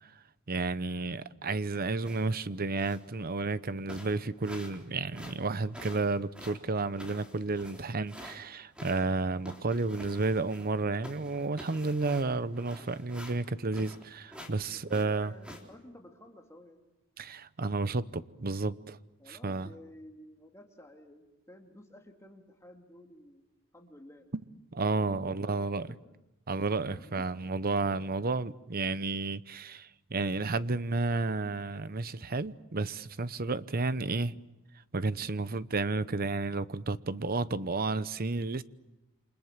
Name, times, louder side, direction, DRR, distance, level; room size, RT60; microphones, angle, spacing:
voice 1, 0.5-15.3 17.2-19.0 19.3-19.7 24.7-25.9 26.5-34.3 34.9-38.6, right 3 dB, 45° right, 0.9 m, -32 dB
sound 1, 2.0-2.4 2.8-3.1 3.5-3.6 3.9-4.8 5.1-8.4 8.7-10.8 11.0-14.0 14.3-14.6 14.9-15.6, equal, 5° right, 4.0 m, -48 dB
voice 2, 14.7-16.8 19.2-24.3 25.3-26.0 27.0-27.3, left 1 dB, 15° left, 2.6 m, -53 dB
29.0 x 26.5 x 7.4 m
head